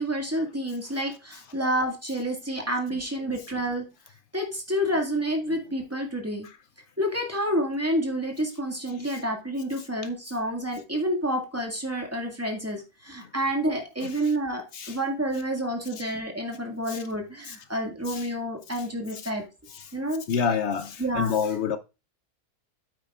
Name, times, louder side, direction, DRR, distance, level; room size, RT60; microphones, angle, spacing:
voice 1, 0.0-3.9 4.3-6.5 7.0-19.4 19.9-20.2 21.0-21.3, equal, 10° right, 1.9 m, -29 dB
voice 2, 20.3-21.8, left 6 dB, 65° left, 0.7 m, -28 dB
8.7 x 8.4 x 2.4 m
omnidirectional pair, 1.6 m